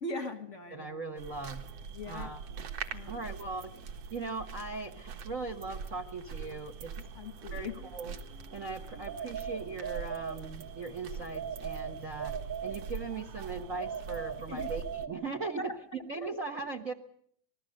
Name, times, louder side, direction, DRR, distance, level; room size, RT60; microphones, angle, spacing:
voice 1, 0.0-0.9 2.0-2.4 2.9-3.3 7.2-7.7 14.5-14.7 15.6-15.8 16.1-16.4, left 2 dB, 45° left, 7 dB, 0.9 m, -40 dB
voice 2, 0.7-1.6 2.0-2.4 3.1-3.8 4.1-6.9 7.5-8.2 8.5-15.7 16.1-16.9, right 3 dB, 80° right, 4 dB, 0.7 m, -39 dB
sound 1, 1.2-15.1, right 5 dB, 60° right, 2.3 m, -43 dB
sound 2, 9.1-10.8 11.3-13.3 13.8-15.7, right 7 dB, 10° right, 0.8 m, -39 dB
26.5 x 20.0 x 6.4 m, 0.66 s
omnidirectional pair, 3.5 m